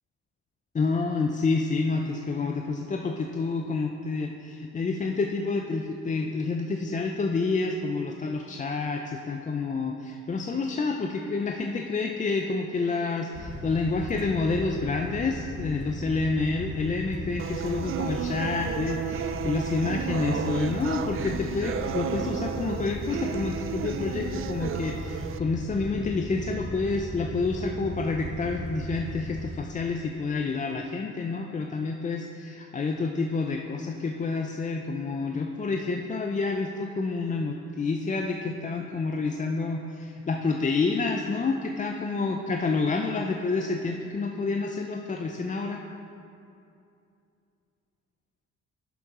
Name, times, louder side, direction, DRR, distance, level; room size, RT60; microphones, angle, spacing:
voice 1, 0.7-45.8, left 4 dB, 25° left, 2 dB, 0.5 m, -28 dB
sound 1, 13.3-29.5, equal, 50° left, 1.1 m, -37 dB
sound 2, 17.4-25.4, right 8 dB, 45° right, 0.4 m, -33 dB
11.0 x 7.0 x 3.7 m, 2.6 s
cardioid pair, 90°, 30 cm